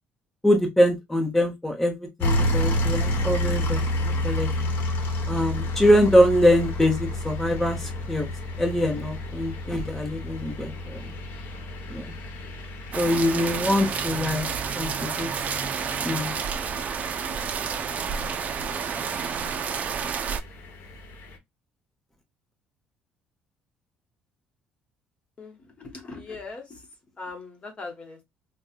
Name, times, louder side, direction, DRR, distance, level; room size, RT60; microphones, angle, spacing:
voice 1, 0.4-4.5 5.3-8.3 8.6-11.1 11.9-12.1 12.9-14.4 14.8-15.3 16.0-16.3, equal, 5° left, 1.0 m, -23 dB
sound 1, 2.2-21.4, left 1 dB, 65° left, 1.1 m, -31 dB
sound 2, 12.9-20.4, right 6 dB, 40° right, 0.4 m, -30 dB
voice 2, 25.4-26.8 27.2-28.2, left 3 dB, 30° left, 1.0 m, -40 dB
4.3 x 2.2 x 2.4 m
cardioid pair, 130°, 4 cm